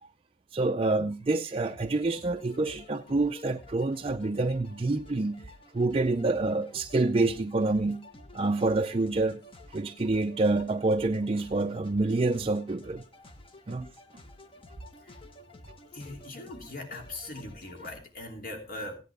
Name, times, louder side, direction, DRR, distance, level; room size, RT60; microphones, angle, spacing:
voice 1, 0.5-8.0 8.3-9.4 9.7-13.0 13.7-13.9, right 2 dB, 35° right, 0.5 m, -27 dB
sound 1, 1.6-18.0, left 2 dB, 30° left, 1.3 m, -51 dB
voice 2, 15.9-19.0, left 2 dB, 55° left, 3.0 m, -40 dB
16.5 x 10.5 x 3.5 m
head